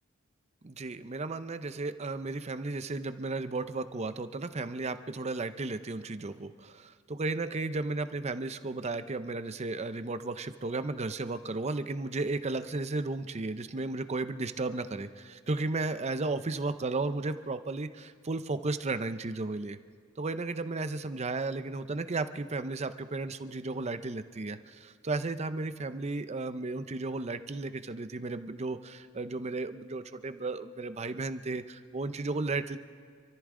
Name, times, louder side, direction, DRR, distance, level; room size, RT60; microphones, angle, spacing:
voice 1, 0.6-19.8 20.2-32.8, right 3 dB, 35° right, 11 dB, 0.6 m, -34 dB
27.0 x 14.0 x 3.7 m, 2.1 s
head